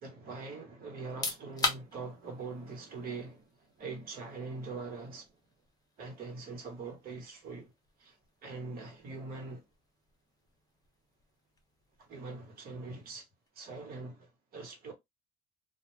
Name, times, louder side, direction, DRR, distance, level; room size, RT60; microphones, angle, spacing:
voice 1, 0.0-5.4 6.0-7.7 8.0-9.6 12.0-13.3 13.5-14.9, right 3 dB, 60° right, 1.2 m, -43 dB
sound 1, 1.0-13.6, left 3 dB, 20° left, 0.6 m, -44 dB
2.3 x 2.1 x 3.1 m
cardioid pair, 110°, 17 cm